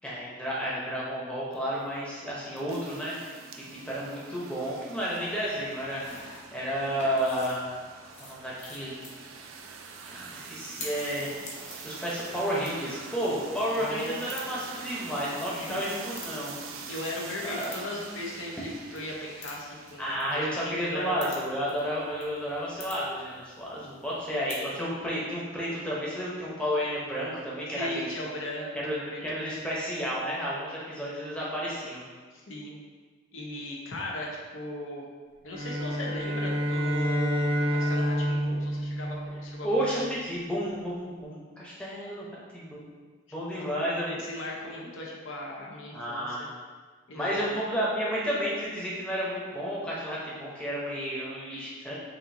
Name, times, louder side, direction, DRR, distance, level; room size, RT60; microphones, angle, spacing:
voice 1, 0.0-3.1 3.6-6.0 6.5-7.8 8.2-9.0 10.1-11.3 11.8-16.5 17.4-17.8 20.0-28.1 28.8-32.0 39.6-42.3 42.5-42.9 43.3-44.1 45.9-46.6 47.1-51.9, equal, 5° left, -7 dB, 0.8 m, -31 dB
sound 1, 1.5-20.2, right 5 dB, 75° right, 0.4 m, -44 dB
sound 2, 5.0-24.7, left 2 dB, 35° left, 0.7 m, -49 dB
voice 2, 13.8-14.2 15.6-15.9 16.9-21.4 27.7-28.7 29.0-29.2 32.3-32.8 33.3-35.1 35.4-40.0 43.5-43.7 44.1-46.5 47.1-47.6, left 1 dB, 70° left, -3 dB, 0.8 m, -38 dB
sound 3, 35.5-39.9, equal, 25° right, 0.6 m, -28 dB
5.8 x 2.6 x 2.7 m, 1.5 s
head